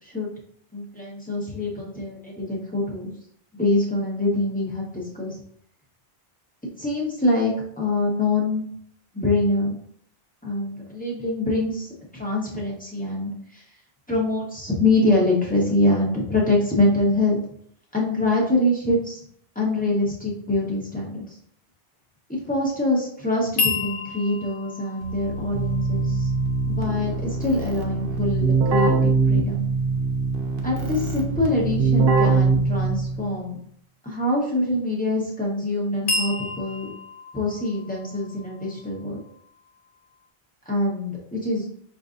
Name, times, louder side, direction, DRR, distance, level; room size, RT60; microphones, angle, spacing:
voice 1, 0.7-3.1 3.6-5.4 6.8-8.6 9.1-9.7 10.4-13.6 14.1-17.4 17.9-19.2 19.5-21.4 22.3-26.3 26.7-29.6 30.6-33.6 34.0-36.9 37.3-39.2 40.7-41.6, left 2 dB, 10° left, -3 dB, 0.9 m, -24 dB
sound 1, 23.6-27.6 36.1-39.9, left 4 dB, 60° left, 0.9 m, -32 dB
Keyboard (musical), 25.0-33.3, right 4 dB, 70° right, 0.9 m, -23 dB
5.5 x 2.6 x 2.5 m, 0.64 s
omnidirectional pair, 1.0 m